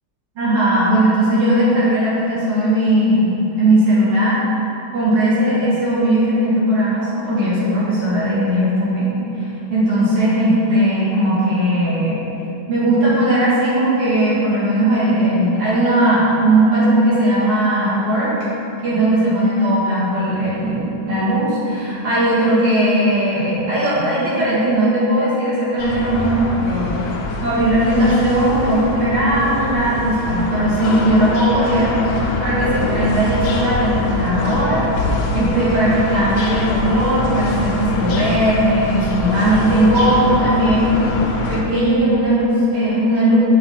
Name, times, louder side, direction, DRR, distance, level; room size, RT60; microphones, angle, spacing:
voice 1, 0.4-4.4 4.9-9.1 9.4-12.2 12.7-18.3 18.8-27.0 27.4-34.9 35.3-40.9 41.5-43.6, right 1 dB, 85° right, -10 dB, 2.9 m, -17 dB
sound 1, 25.8-41.6, left 2 dB, 85° left, 1.7 m, -24 dB
7.2 x 4.9 x 5.7 m, 2.9 s
omnidirectional pair, 2.3 m